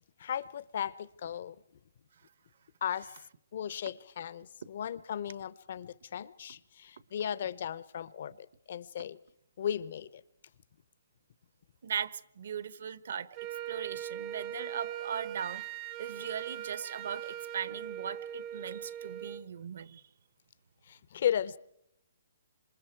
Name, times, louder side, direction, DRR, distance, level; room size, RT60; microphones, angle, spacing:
voice 1, 0.2-1.6 2.8-3.1 3.5-9.2 9.6-10.2 20.8-21.6, left 9 dB, 50° left, 0.8 m, -36 dB
voice 2, 11.8-13.3 13.7-15.6 16.0-20.0, right 8 dB, 60° right, 1.1 m, -38 dB
Wind instrument woodwind instrument, 13.3-19.4, right 11 dB, 25° right, 0.8 m, -41 dB
27.0 x 26.0 x 4.6 m
hypercardioid pair, 160°, 0 cm